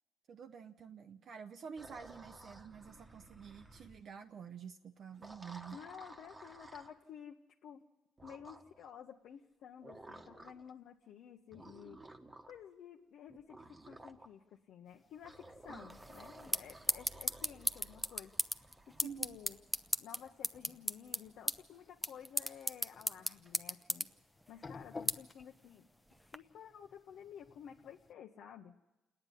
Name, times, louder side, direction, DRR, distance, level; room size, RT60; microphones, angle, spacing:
voice 1, 0.3-5.8 15.7-15.8 19.0-19.4, right 7 dB, 55° right, 5 dB, 0.7 m, -49 dB
sound 1, 1.8-4.0 5.1-7.0 8.2-8.9 9.8-10.7 11.5-12.6 13.3-14.3 15.2-19.0, right 2 dB, 20° right, 1.2 m, -55 dB
voice 2, 5.7-7.4 7.6-7.8 8.2-12.0 12.5-18.3 18.9-19.6 20.0-24.1 24.5-25.9 26.3-28.7, left 8 dB, 70° left, 1 dB, 0.9 m, -53 dB
sound 2, 14.9-28.1, left 3 dB, 25° left, 0.9 m, -58 dB
sound 3, 15.9-26.4, equal, 5° right, 0.7 m, -39 dB
28.0 x 9.7 x 9.9 m, 1.1 s
cardioid pair, 115°, 0 cm